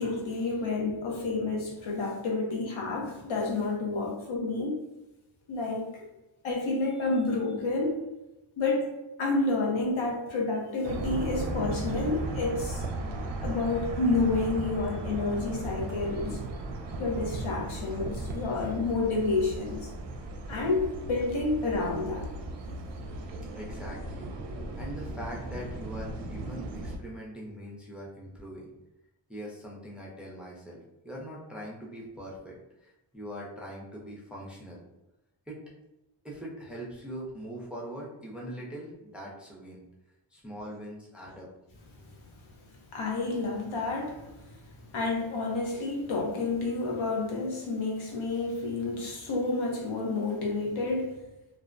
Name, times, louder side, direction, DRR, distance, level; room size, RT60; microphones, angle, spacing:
voice 1, 0.0-4.7 5.5-5.8 6.4-8.0 8.6-8.9 9.2-12.8 13.4-16.4 17.0-19.9 20.5-22.3 42.9-51.3, left 3 dB, 70° left, -1 dB, 0.8 m, -29 dB
sound 1, 10.8-27.0, right 2 dB, 60° right, 0.5 m, -36 dB
voice 2, 23.5-24.3 24.8-28.7 29.3-34.8 35.5-35.6 36.2-39.8 40.3-41.5, equal, ahead, -4 dB, 0.5 m, -42 dB
2.5 x 2.0 x 2.5 m, 0.96 s
cardioid pair, 80°, 50 cm